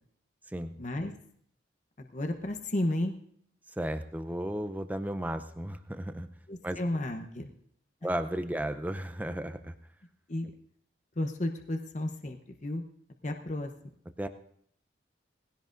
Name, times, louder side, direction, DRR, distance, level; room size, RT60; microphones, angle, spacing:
voice 1, 0.8-1.1 2.0-3.2 6.5-7.5 10.3-10.5 11.2-12.9 13.2-13.7, left 1 dB, 40° left, 4 dB, 0.8 m, -33 dB
voice 2, 3.8-6.3 6.6-6.8 8.0-9.7 14.2-14.3, right 1 dB, 10° right, 9 dB, 0.5 m, -34 dB
19.5 x 16.0 x 2.6 m, 0.66 s
head